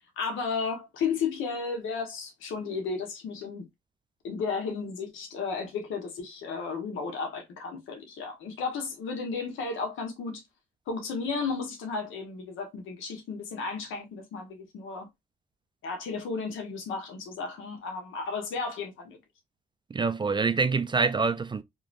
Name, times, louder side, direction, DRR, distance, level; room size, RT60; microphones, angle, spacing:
voice 1, 0.0-3.7 4.2-10.4 10.9-15.1 15.8-19.2, left 5 dB, 80° left, 1.3 m, -33 dB
voice 2, 19.9-21.6, right 4 dB, 25° right, 0.4 m, -26 dB
3.0 x 3.0 x 2.5 m
cardioid pair, 90°, 20 cm